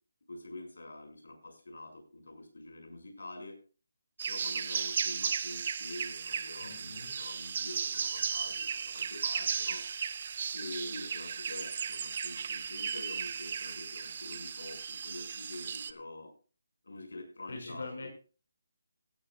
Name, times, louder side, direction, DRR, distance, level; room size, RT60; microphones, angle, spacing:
voice 1, 0.3-3.6 4.3-9.8 10.5-16.3 16.8-18.1, left 2 dB, 85° left, 5 dB, 5.9 m, -46 dB
sound 1, 4.2-15.9, right 6 dB, 35° right, 0.7 m, -35 dB
voice 2, 6.6-7.2 17.5-18.1, left 3 dB, 70° left, 2 dB, 5.6 m, -43 dB
16.0 x 13.5 x 2.4 m, 0.34 s
hypercardioid pair, 175°, 0 cm